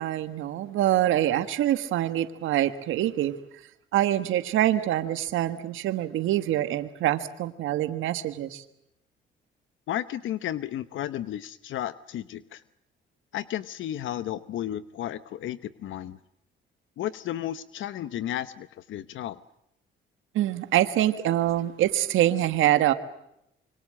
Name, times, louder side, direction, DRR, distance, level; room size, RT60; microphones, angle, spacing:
voice 1, 0.0-3.3 3.9-8.6 20.3-22.9, right 13 dB, 85° right, 11 dB, 1.5 m, -25 dB
voice 2, 9.9-12.6 13.3-16.2 17.0-19.4, left 12 dB, 75° left, 14 dB, 0.9 m, -33 dB
26.5 x 24.5 x 7.7 m, 0.81 s
cardioid pair, 90°, 20 cm